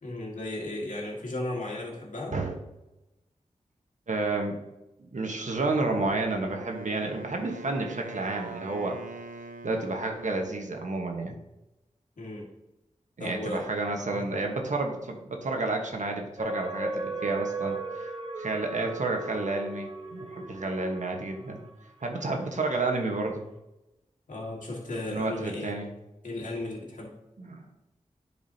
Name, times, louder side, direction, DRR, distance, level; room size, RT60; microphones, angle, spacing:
voice 1, 0.0-2.4 12.2-12.5 13.2-13.7 14.1-14.4 24.3-25.8 26.2-27.1, left 1 dB, 75° left, -3 dB, 2.0 m, -35 dB
voice 2, 4.1-4.6 5.0-9.1 9.6-11.4 13.2-18.1 18.4-21.6 22.0-23.4 25.1-25.9 27.4-27.6, right 3 dB, 65° right, 2 dB, 1.3 m, -30 dB
Wind instrument woodwind instrument, 6.4-10.6, right 3 dB, 90° right, 0.7 m, -43 dB
sound 1, 16.4-22.1 22.6-22.7, right 3 dB, 45° right, 1.4 m, -36 dB
10.5 x 4.8 x 2.8 m, 0.95 s
cardioid pair, 50°, 13 cm